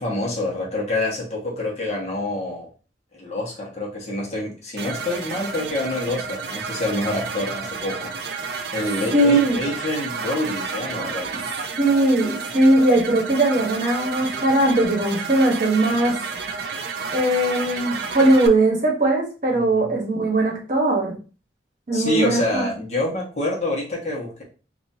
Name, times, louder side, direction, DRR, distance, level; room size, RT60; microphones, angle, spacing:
voice 1, 0.0-2.7 3.1-8.1 8.7-11.3 19.5-19.9 21.9-24.4, left 1 dB, 40° left, -3 dB, 1.2 m, -27 dB
sound 1, 4.8-18.5, right 5 dB, 60° right, 0.4 m, -31 dB
voice 2, 9.1-9.6 11.8-16.2 17.1-21.1 21.9-22.6, right 1 dB, 45° right, -2 dB, 1.1 m, -19 dB
3.9 x 2.7 x 2.7 m, 0.35 s
head